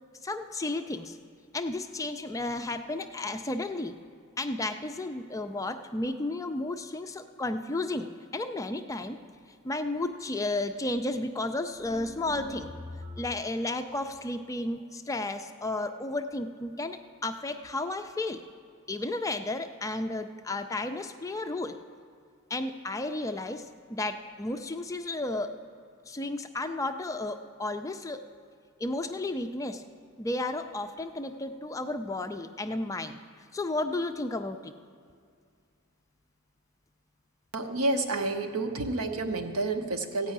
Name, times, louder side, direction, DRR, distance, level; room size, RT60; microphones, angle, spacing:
voice 1, 0.2-1.2 1.5-4.0 4.4-9.2 9.6-12.7 13.2-18.4 18.9-21.8 22.5-25.6 26.0-28.2 28.8-29.9 30.2-33.2 33.5-34.7, left 2 dB, 15° left, 7 dB, 0.3 m, -33 dB
sound 1, 11.7-13.6, left 1 dB, 20° right, 0.8 m, -43 dB
voice 2, 37.5-40.3, right 2 dB, 80° right, 5 dB, 0.9 m, -29 dB
15.0 x 5.3 x 8.6 m, 2.2 s
head